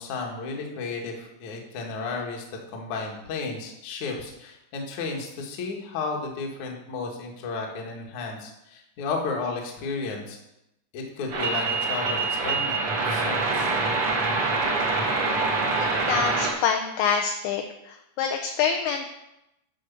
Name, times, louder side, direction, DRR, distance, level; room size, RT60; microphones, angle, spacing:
voice 1, 0.0-2.4 2.7-10.4 10.9-13.7, left 4 dB, 65° left, 0 dB, 1.8 m, -33 dB
sound 1, 11.3-16.5, right 3 dB, 75° right, 1.3 m, -25 dB
voice 2, 15.8-19.1, left 7 dB, 85° left, 4 dB, 2.6 m, -26 dB
11.0 x 5.5 x 6.9 m, 0.87 s
omnidirectional pair, 6.0 m